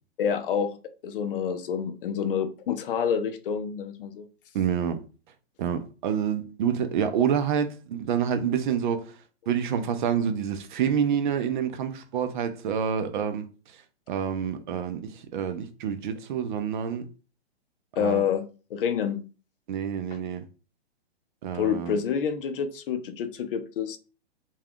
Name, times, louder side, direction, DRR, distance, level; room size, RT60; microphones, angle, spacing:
voice 1, 0.2-4.3 18.0-19.2 21.5-24.0, left 7 dB, 55° left, 0.5 m, -28 dB
voice 2, 4.5-5.0 5.6-9.2 9.5-13.5 14.1-17.1 18.0-18.2 19.7-20.4 21.4-22.0, right 8 dB, 50° right, 0.5 m, -27 dB
3.3 x 2.3 x 2.3 m
hypercardioid pair, 130°, 32 cm